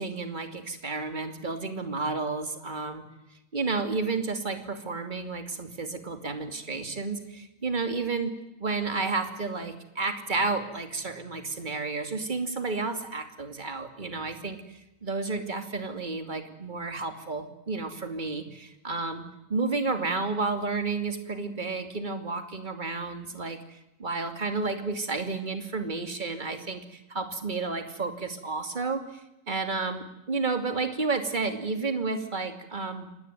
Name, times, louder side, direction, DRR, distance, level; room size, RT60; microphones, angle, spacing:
voice 1, 0.0-3.0 3.5-29.2 29.5-33.1, right 3 dB, 25° right, 8 dB, 2.8 m, -31 dB
27.5 x 19.5 x 9.3 m, 0.91 s
omnidirectional pair, 1.9 m